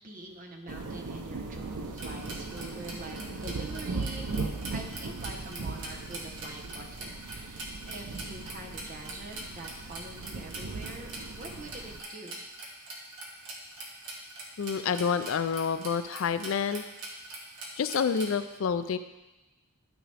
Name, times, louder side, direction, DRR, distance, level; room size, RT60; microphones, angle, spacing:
voice 1, 0.0-4.3 4.7-12.4, right 2 dB, 35° right, 1 dB, 1.0 m, -45 dB
sound 1, 0.7-12.0, right 3 dB, 85° right, 0.7 m, -38 dB
sound 2, 2.0-18.3, right 2 dB, 55° right, 1.4 m, -42 dB
voice 2, 14.6-16.8 17.8-19.0, left 6 dB, 60° left, 11 dB, 0.4 m, -28 dB
12.0 x 5.0 x 3.4 m, 1.1 s
head